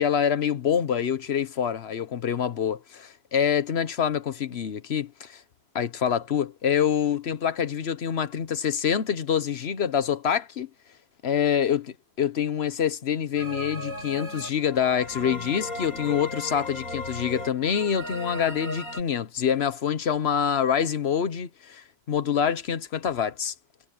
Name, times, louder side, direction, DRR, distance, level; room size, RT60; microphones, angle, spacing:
voice 1, 0.0-5.4 5.7-10.7 11.2-23.5, left 8 dB, 50° left, 1.1 m, -26 dB
sound 1, 13.4-19.0, left 2 dB, 70° left, 7.9 m, -36 dB
omnidirectional pair, 1.5 m